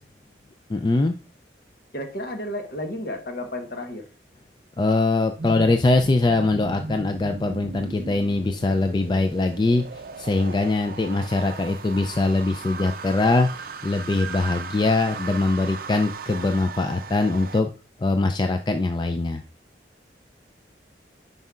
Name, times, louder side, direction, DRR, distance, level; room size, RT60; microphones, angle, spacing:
voice 1, 0.7-1.2 4.8-17.7 18.0-19.4, left 2 dB, 25° left, 7 dB, 0.3 m, -22 dB
voice 2, 1.9-4.0, left 1 dB, 55° left, 4 dB, 1.2 m, -32 dB
sound 1, 5.4-17.6, right 4 dB, 55° right, 0.5 m, -37 dB
9.3 x 5.3 x 2.4 m, 0.38 s
head